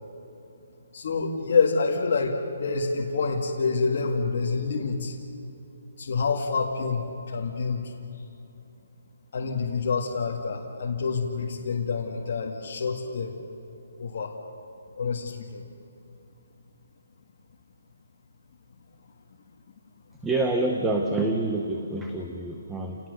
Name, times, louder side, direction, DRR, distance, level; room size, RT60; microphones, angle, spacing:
voice 1, 0.9-5.1 6.0-7.9 9.3-13.3 14.0-14.3 15.0-15.6, left 4 dB, 40° left, -2 dB, 1.9 m, -27 dB
voice 2, 20.2-23.0, right 2 dB, 5° right, 2 dB, 0.8 m, -27 dB
29.0 x 19.0 x 6.6 m, 3.0 s
hypercardioid pair, 175°, 0 cm